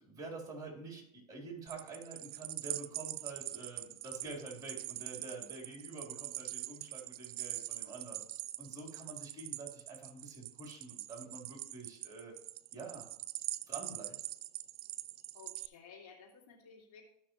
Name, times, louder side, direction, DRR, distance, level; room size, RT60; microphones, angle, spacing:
voice 1, 0.0-8.2 8.6-12.4 12.7-13.1 13.7-14.2, right 3 dB, 20° right, 0 dB, 3.9 m, -47 dB
sound 1, 1.7-15.7, right 16 dB, 70° right, 0.5 m, -43 dB
voice 2, 15.3-17.0, left 5 dB, 70° left, -1 dB, 2.6 m, -55 dB
14.5 x 6.3 x 3.1 m, 0.78 s
supercardioid pair, 120°, 20 cm